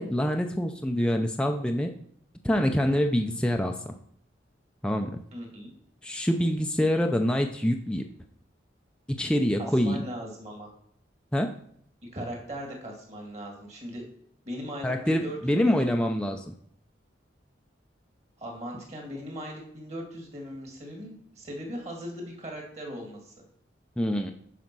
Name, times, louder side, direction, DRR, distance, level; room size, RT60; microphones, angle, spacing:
voice 1, 0.0-1.9 2.4-3.9 4.8-5.2 6.0-8.1 9.1-10.0 11.3-11.5 14.8-16.5 24.0-24.3, equal, 5° left, 3 dB, 0.5 m, -26 dB
voice 2, 5.3-5.7 9.6-10.7 12.1-14.0 14.4-15.4 15.6-16.0 18.4-23.3, equal, 35° right, 1 dB, 2.4 m, -39 dB
9.4 x 5.0 x 6.1 m, 0.66 s
head